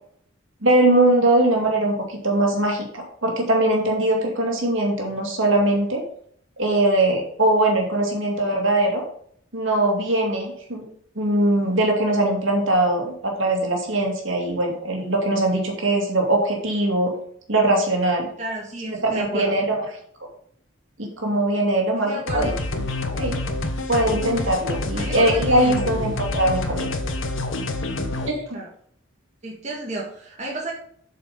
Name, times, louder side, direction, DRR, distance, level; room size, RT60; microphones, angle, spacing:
voice 1, 0.6-6.0 6.6-9.0 9.5-10.8 11.2-17.1 17.5-18.3 19.0-19.8 21.0-22.5 23.2-23.4 23.9-26.9 28.3-28.6, right 1 dB, 75° right, 1 dB, 2.5 m, -21 dB
voice 2, 18.4-19.6 21.9-22.6 24.9-26.0 28.5-28.7 29.4-30.7, right 2 dB, 35° right, -2 dB, 1.8 m, -32 dB
sound 1, 22.3-28.3, left 2 dB, 75° left, 1.2 m, -27 dB
7.8 x 5.6 x 5.3 m, 0.62 s
head